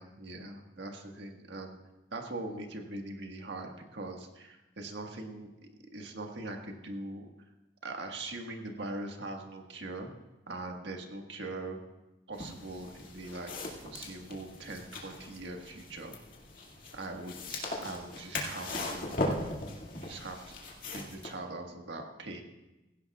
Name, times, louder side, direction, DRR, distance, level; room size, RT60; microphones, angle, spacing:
voice 1, 0.0-1.8 2.1-5.5 5.9-7.3 7.8-10.1 10.5-11.8 12.3-16.1 16.9-19.5 20.0-20.5 20.9-22.4, right 2 dB, 85° right, 2 dB, 1.6 m, -41 dB
sound 1, 12.3-21.3, left 2 dB, 50° left, 2.2 m, -39 dB
16.5 x 16.0 x 2.4 m, 1.0 s
head